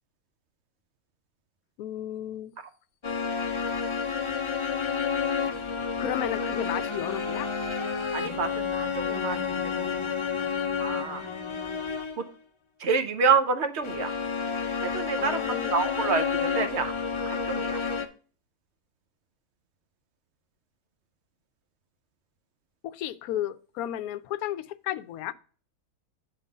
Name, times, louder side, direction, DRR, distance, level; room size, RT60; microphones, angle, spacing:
voice 1, 1.8-2.5 6.0-7.5 15.2-15.7 22.8-25.3, left 12 dB, 70° left, 13 dB, 1.0 m, -33 dB
sound 1, 3.0-12.3 13.8-18.1, left 6 dB, 50° left, 0.3 m, -30 dB
voice 2, 8.1-10.1 10.4-10.5 10.8-11.2 12.2-12.3 12.8-14.1 14.8-15.4 15.7-16.9 17.2-17.8, right 5 dB, 50° right, 9 dB, 0.9 m, -28 dB
8.3 x 3.7 x 5.2 m, 0.40 s
omnidirectional pair, 1.7 m